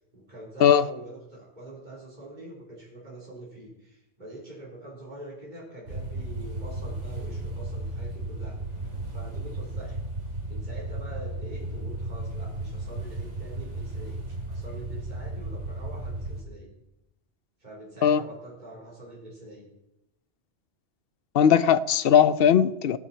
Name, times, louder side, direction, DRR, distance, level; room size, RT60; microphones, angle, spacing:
voice 1, 0.1-8.6 8.8-10.0 10.5-14.2 14.5-16.7 17.6-19.7, right 1 dB, 40° right, 4.0 m, -44 dB
sound 1, 5.9-16.4, right 2 dB, 90° right, 2.7 m, -34 dB
voice 2, 21.3-23.0, left 8 dB, 60° left, 0.8 m, -19 dB
19.0 x 9.2 x 4.4 m
omnidirectional pair, 1.2 m